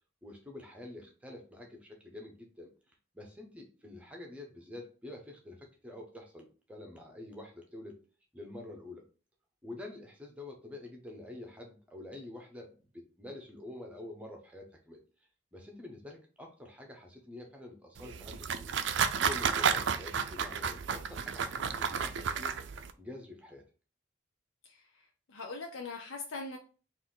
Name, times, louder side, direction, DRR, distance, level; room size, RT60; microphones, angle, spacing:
voice 1, 0.2-2.7 3.1-8.0 8.3-9.0 9.6-15.0 15.5-18.7 19.2-22.5 23.0-23.6, left 2 dB, 5° right, 1 dB, 0.8 m, -47 dB
sound 1, 18.0-22.9, right 6 dB, 70° right, 0.4 m, -32 dB
voice 2, 25.3-26.6, left 3 dB, 90° left, 1 dB, 0.6 m, -41 dB
4.1 x 2.5 x 3.8 m, 0.37 s
head